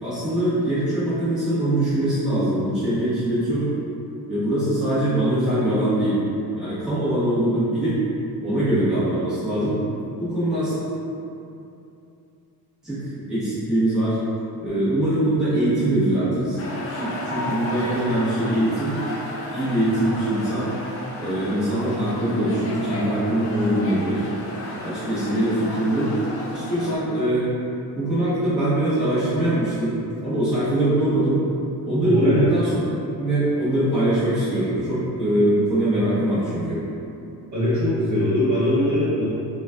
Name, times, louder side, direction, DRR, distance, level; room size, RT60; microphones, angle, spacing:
voice 1, 0.0-3.7 4.3-6.2 6.6-8.0 8.4-9.8 10.2-10.8 12.8-14.2 14.6-16.6 16.9-19.0 19.5-20.7 21.2-24.3 24.8-26.2 26.5-27.5 27.9-31.4 31.8-32.8 33.2-36.8, right 1 dB, ahead, -14 dB, 1.0 m, -22 dB
sound 1, 16.6-27.0, left 1 dB, 40° left, 0.4 m, -33 dB
voice 2, 32.0-32.5 37.5-39.2, left 1 dB, 45° right, -10 dB, 1.1 m, -21 dB
3.8 x 2.3 x 2.4 m, 2.7 s
cardioid pair, 145°, 39 cm